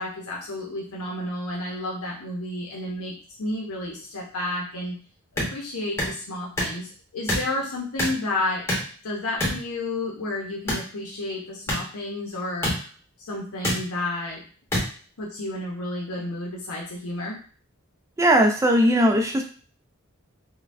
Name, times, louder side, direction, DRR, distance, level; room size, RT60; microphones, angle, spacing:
voice 1, 0.0-5.0 5.3-8.7 9.0-12.9 13.2-14.4 15.2-17.4, left 2 dB, 90° left, -2 dB, 0.8 m, -31 dB
sound 1, 5.4-5.5 6.0-6.1 6.6-6.8 7.3-7.5 8.0-8.2 8.7-8.9 9.4-9.6 10.7-10.9 11.7-11.8 12.6-12.8 13.6-13.8 14.7-14.8, left 1 dB, 10° left, 1.1 m, -25 dB
voice 2, 18.2-19.4, equal, 15° right, 3 dB, 0.4 m, -18 dB
5.4 x 2.2 x 2.6 m, 0.41 s
head